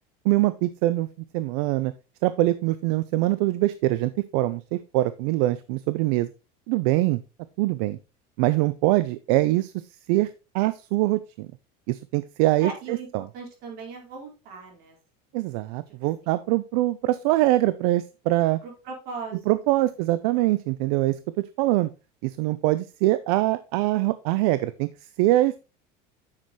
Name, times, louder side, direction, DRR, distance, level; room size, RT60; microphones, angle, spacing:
voice 1, 0.2-1.1 1.3-1.9 2.2-6.3 6.7-7.2 7.6-8.0 8.4-9.7 10.1-10.3 10.5-11.5 11.9-13.2 15.3-18.6 19.5-21.2 21.6-21.9 22.2-24.9 25.2-25.5, right 17 dB, 70° right, 15 dB, 0.6 m, -23 dB
voice 2, 12.6-13.1 13.3-15.0 15.9-16.4 18.6-19.9, right 4 dB, 50° right, 1 dB, 4.3 m, -39 dB
9.6 x 6.7 x 3.0 m, 0.29 s
cardioid pair, 155°, 20 cm